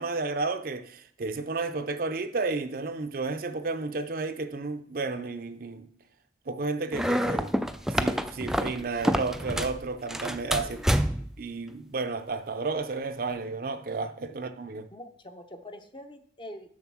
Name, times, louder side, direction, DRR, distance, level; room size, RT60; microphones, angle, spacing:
voice 1, 0.0-5.9 6.5-7.5 7.9-10.8 11.4-14.9, right 3 dB, 55° right, 0.5 m, -32 dB
sound 1, 6.9-9.8 10.1-11.4, equal, 5° right, 0.3 m, -27 dB
voice 2, 10.6-11.0 14.3-14.4 14.9-16.7, left 1 dB, 30° left, 0.7 m, -45 dB
7.2 x 6.2 x 6.1 m
head